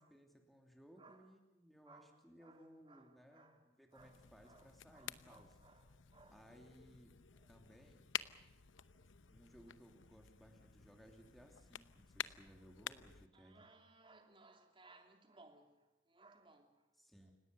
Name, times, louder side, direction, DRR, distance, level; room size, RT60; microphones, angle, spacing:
voice 1, 0.0-5.5 6.3-7.2 7.5-8.1 9.3-13.6 17.0-17.3, equal, ahead, 2.9 m, -62 dB
voice 2, 1.0-1.3 1.8-6.5 7.3-7.8 8.9-9.1 12.5-12.7 13.3-16.9 17.2-17.3, right 3 dB, 25° right, 3.0 m, -65 dB
sound 1, 3.9-13.3, left 9 dB, 85° left, 0.9 m, -50 dB
30.0 x 17.5 x 6.9 m
head